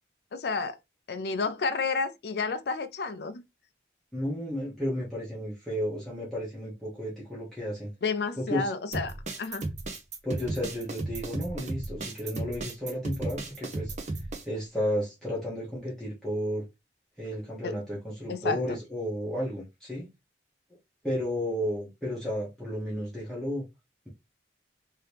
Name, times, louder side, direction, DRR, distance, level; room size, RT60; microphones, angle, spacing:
voice 1, 0.3-0.8 1.1-3.4 8.0-9.7 17.6-17.8 18.3-18.8, left 4 dB, 60° left, 0.4 m, -31 dB
voice 2, 4.1-7.9 8.4-8.7 10.2-13.9 14.4-16.7 17.2-20.1 21.0-23.6, equal, ahead, 1.0 m, -33 dB
sound 1, 8.9-14.4, right 2 dB, 40° right, 0.6 m, -34 dB
2.9 x 2.8 x 3.3 m
head